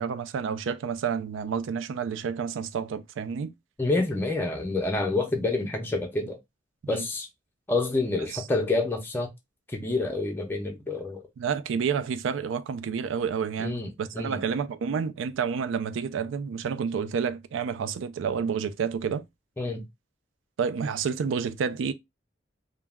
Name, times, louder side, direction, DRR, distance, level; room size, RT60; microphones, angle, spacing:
voice 1, 0.0-3.5 6.8-7.0 8.3-8.4 11.4-19.2 20.6-21.9, right 6 dB, 85° right, 0.3 m, -29 dB
voice 2, 3.8-6.4 6.9-7.3 7.7-9.3 9.7-11.2 13.6-14.4 19.6-19.9, left 2 dB, 10° left, 0.5 m, -28 dB
2.2 x 2.0 x 3.4 m
head